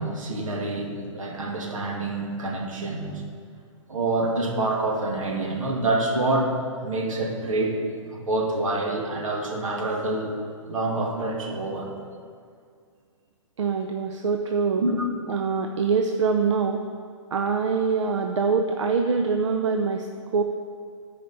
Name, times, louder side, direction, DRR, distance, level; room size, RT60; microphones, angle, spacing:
voice 1, 0.0-3.2 3.9-6.5 6.8-7.8 8.0-10.3 10.7-11.9 14.8-15.0, right 2 dB, 80° right, 0 dB, 2.0 m, -27 dB
voice 2, 13.6-14.9 15.3-16.8 17.3-20.1 20.3-20.4, right 5 dB, 65° right, 4 dB, 0.6 m, -24 dB
14.0 x 5.0 x 4.0 m, 2.2 s
hypercardioid pair, 180°, 17 cm